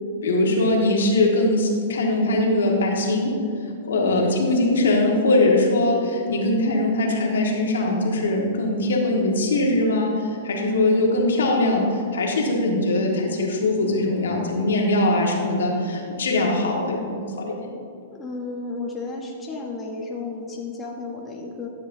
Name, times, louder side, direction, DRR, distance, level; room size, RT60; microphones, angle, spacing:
voice 1, 0.2-3.3 3.9-17.7, left 2 dB, 90° left, -1 dB, 1.6 m, -21 dB
voice 2, 3.9-4.3 18.1-21.7, left 3 dB, 15° left, -2 dB, 1.1 m, -33 dB
12.5 x 7.2 x 2.7 m, 2.3 s
hypercardioid pair, 145°, 0 cm